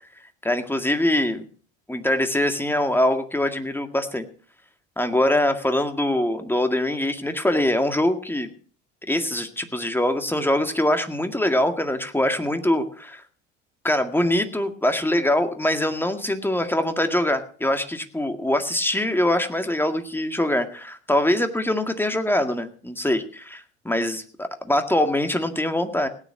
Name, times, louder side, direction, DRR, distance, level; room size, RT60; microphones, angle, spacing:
voice 1, 0.4-1.5 1.9-4.3 5.0-8.5 9.1-13.2 13.8-26.1, left 1 dB, 5° left, 7 dB, 2.0 m, -23 dB
17.0 x 9.9 x 5.9 m, 0.43 s
figure-of-eight pair, 70°, 34 cm